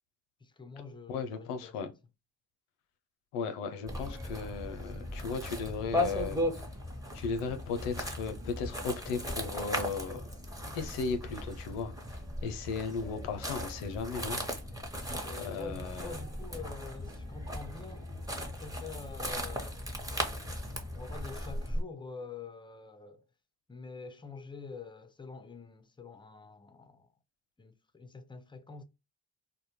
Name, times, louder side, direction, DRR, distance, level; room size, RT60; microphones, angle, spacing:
voice 1, 0.4-1.8 4.7-4.8 15.2-18.1 18.4-19.8 20.9-23.2 23.7-27.1 27.6-28.8, left 4 dB, 10° left, 0.4 m, -46 dB
voice 2, 1.1-1.9 3.3-6.4 7.1-10.2 10.7-11.9 12.4-14.4 15.4-16.2, left 5 dB, 90° left, 0.6 m, -36 dB
sound 1, 3.9-21.8, left 1 dB, 5° right, 0.7 m, -37 dB
2.1 x 2.1 x 2.9 m
hypercardioid pair, 40°, 50 cm